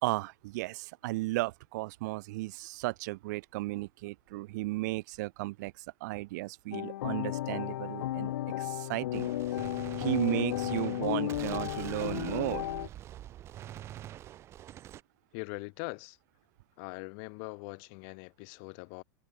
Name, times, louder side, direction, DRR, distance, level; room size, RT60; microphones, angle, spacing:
voice 1, 0.0-9.3 10.0-12.7, right 21 dB, 50° right, 1.0 m, -34 dB
sound 1, 6.7-12.9, left 14 dB, 75° left, 3.2 m, -34 dB
Gunshot gunfire, 9.1-15.0, right 12 dB, 20° right, 1.5 m, -45 dB
voice 2, 15.3-16.2 16.8-19.0, left 40 dB or more, 40° left, 4.3 m, -42 dB
supercardioid pair, 175°, 12 cm